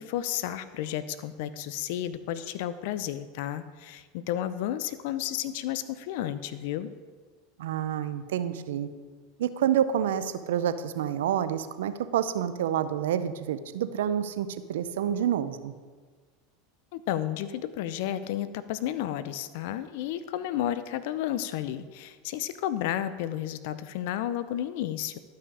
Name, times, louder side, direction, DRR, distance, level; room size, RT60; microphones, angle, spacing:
voice 1, 0.0-6.9 16.9-25.2, left 11 dB, 65° left, 14 dB, 0.6 m, -32 dB
voice 2, 7.6-8.9 9.4-15.7, right 9 dB, 80° right, 12 dB, 0.5 m, -28 dB
12.0 x 5.7 x 4.9 m, 1.5 s
hypercardioid pair, 95°, 0 cm